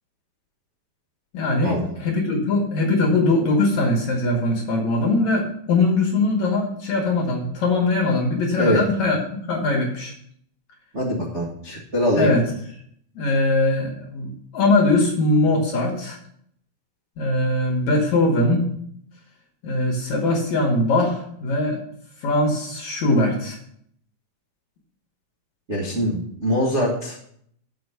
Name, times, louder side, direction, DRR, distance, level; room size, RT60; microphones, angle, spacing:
voice 1, 1.3-9.2 9.5-10.1 12.2-12.4 13.2-16.2 17.2-18.7 19.6-21.8 22.2-23.6, left 2 dB, 60° left, 0 dB, 2.1 m, -21 dB
voice 2, 10.9-12.4 25.7-27.2, equal, 45° right, -6 dB, 0.8 m, -23 dB
7.7 x 5.2 x 6.6 m, 0.67 s
omnidirectional pair, 4.5 m